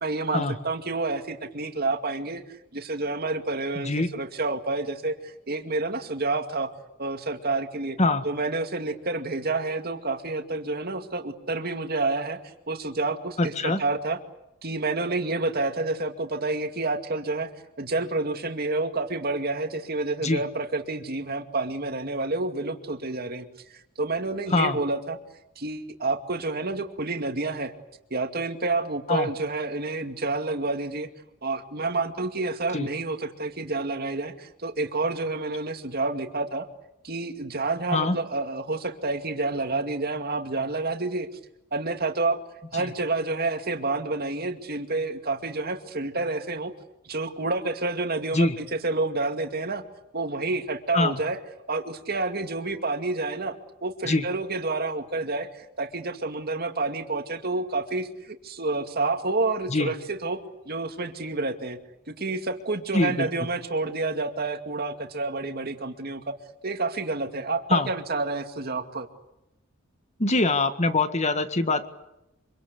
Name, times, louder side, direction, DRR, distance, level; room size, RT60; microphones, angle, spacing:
voice 1, 0.0-2.4 2.7-6.7 7.0-8.0 8.2-12.4 12.7-14.2 14.6-17.5 17.8-23.5 24.0-25.2 25.6-27.7 28.1-31.1 31.4-36.7 37.0-41.3 41.7-42.4 42.7-46.7 47.1-49.8 50.1-51.4 51.7-53.6 53.8-61.8 62.1-66.3 66.6-69.1, right 3 dB, 50° right, 6 dB, 2.3 m, -29 dB
voice 2, 3.8-4.1 8.0-8.2 13.4-13.8 20.2-20.4 24.5-24.8 29.1-29.3 32.7-32.9 37.9-38.2 42.8-42.9 48.3-48.6 50.9-51.2 54.1-54.2 59.7-59.9 62.9-63.3 67.7-67.9 70.2-71.9, left 2 dB, 35° left, 9 dB, 1.8 m, -23 dB
25.5 x 24.5 x 8.2 m, 0.87 s
head